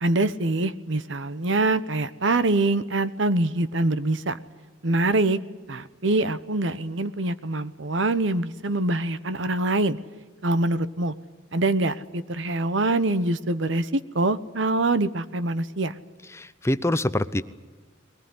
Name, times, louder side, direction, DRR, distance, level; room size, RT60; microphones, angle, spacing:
voice 1, 0.0-4.4 4.8-5.4 5.7-10.0 10.4-11.1 11.5-15.9, right 2 dB, 65° right, 13 dB, 1.0 m, -24 dB
voice 2, 16.3-17.4, left 1 dB, 15° left, 13 dB, 0.7 m, -25 dB
22.0 x 18.5 x 9.6 m, 1.4 s
head